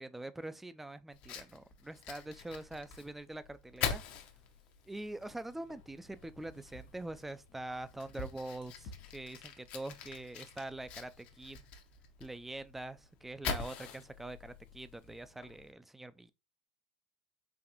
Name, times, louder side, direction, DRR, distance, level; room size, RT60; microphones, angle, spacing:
voice 1, 0.0-4.0 4.9-11.6 12.2-16.3, right 2 dB, 5° right, 0.4 m, -44 dB
Fire, 1.1-15.7, left 6 dB, 55° left, 0.8 m, -44 dB
4.0 x 2.5 x 2.9 m
hypercardioid pair, 90°, 3 cm